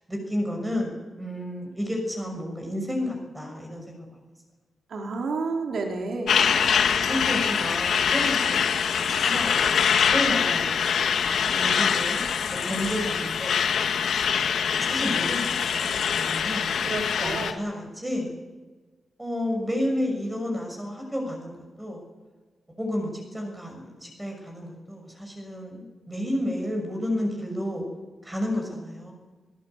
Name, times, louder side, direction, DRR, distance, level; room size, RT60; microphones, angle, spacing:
voice 1, 0.1-4.1 7.0-11.1 11.4-12.2 12.6-13.6 14.8-16.8 17.2-18.3 19.2-22.1 22.8-27.9 28.2-29.1, left 1 dB, 10° right, 2 dB, 6.3 m, -31 dB
voice 2, 4.9-6.4 16.8-17.6, right 3 dB, 60° right, 2 dB, 4.0 m, -30 dB
Truck, 6.3-17.5, left 7 dB, 80° left, 1.9 m, -24 dB
22.0 x 20.0 x 8.2 m, 1.3 s
wide cardioid pair, 160°, 0 cm